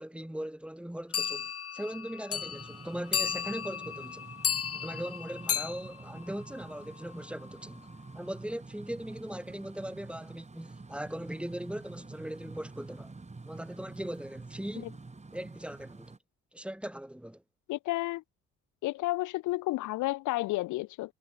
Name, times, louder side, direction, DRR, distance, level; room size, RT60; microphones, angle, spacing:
voice 1, 0.0-4.3 4.7-7.9 8.1-13.1 13.5-15.0 15.3-16.1 16.5-17.4, right 1 dB, 5° right, 2.5 m, -39 dB
sound 1, 1.1-7.0, left 8 dB, 50° left, 2.5 m, -34 dB
sound 2, 2.3-16.2, right 3 dB, 20° right, 6.3 m, -48 dB
voice 2, 17.7-18.2 18.8-21.1, left 18 dB, 80° left, 0.5 m, -31 dB
cardioid pair, 90°, 30 cm